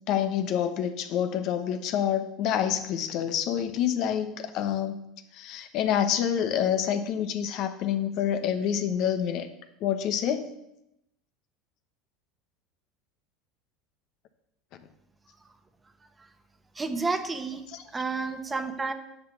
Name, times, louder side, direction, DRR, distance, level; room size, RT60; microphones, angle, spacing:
voice 1, 0.1-5.0 5.3-9.5 9.8-10.5 17.7-17.8, left 9 dB, 60° left, 9 dB, 1.0 m, -27 dB
voice 2, 16.8-17.6 17.9-18.9, right 4 dB, 20° right, 8 dB, 1.1 m, -30 dB
9.4 x 6.0 x 6.8 m, 0.83 s
hypercardioid pair, 90°, 0 cm